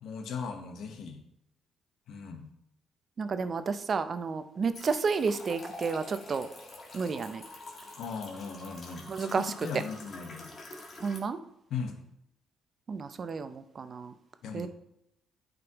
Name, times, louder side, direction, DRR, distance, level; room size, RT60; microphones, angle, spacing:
voice 1, 0.0-1.2 2.1-2.5 8.0-10.5 11.7-12.0 14.4-14.7, left 5 dB, 75° left, 5 dB, 1.1 m, -38 dB
voice 2, 3.2-6.5 6.9-7.4 9.1-9.8 11.0-11.4 12.9-14.1 14.5-14.7, right 5 dB, 45° right, 11 dB, 0.6 m, -31 dB
sound 1, 4.7-11.2, left 2 dB, 45° left, 1.7 m, -46 dB
9.3 x 5.2 x 3.0 m, 0.79 s
cardioid pair, 80°, 0 cm